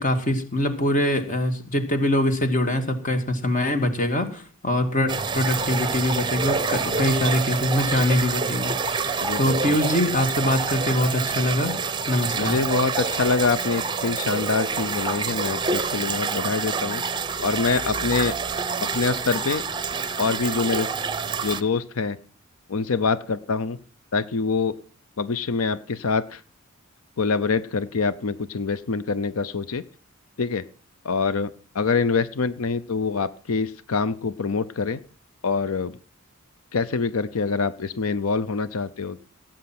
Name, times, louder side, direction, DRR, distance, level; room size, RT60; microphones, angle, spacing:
voice 1, 0.0-11.7 12.1-12.6, left 1 dB, 40° left, 7 dB, 2.3 m, -23 dB
sound 1, 5.1-21.6, right 5 dB, 20° right, 0.8 m, -27 dB
voice 2, 9.2-9.8 12.3-17.0 17.4-18.4 18.9-19.6 20.2-20.9 21.4-22.2 22.7-23.8 24.1-24.7 25.2-26.4 27.2-29.8 30.4-30.6 31.0-35.0 35.4-36.0 36.7-39.2, left 4 dB, 90° left, 15 dB, 0.7 m, -25 dB
17.5 x 8.8 x 6.0 m, 0.40 s
head